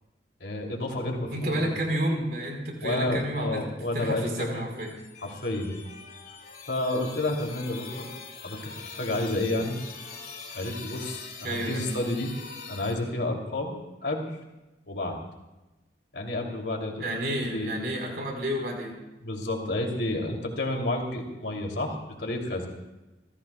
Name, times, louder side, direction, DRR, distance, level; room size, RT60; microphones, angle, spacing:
voice 1, 0.4-1.7 2.8-4.7 5.2-5.7 6.7-8.1 8.4-8.6 9.0-9.8 10.5-12.3 12.7-13.7 14.0-14.3 14.9-15.2 16.1-17.7 19.2-22.7, left 2 dB, 75° left, 0 dB, 3.0 m, -30 dB
voice 2, 1.3-3.6 3.9-4.9 11.4-11.9 17.0-19.0, right 1 dB, 60° right, 1 dB, 4.3 m, -30 dB
sound 1, 4.7-13.0, left 5 dB, 50° left, 3.1 m, -43 dB
29.0 x 15.5 x 2.3 m, 1.0 s
head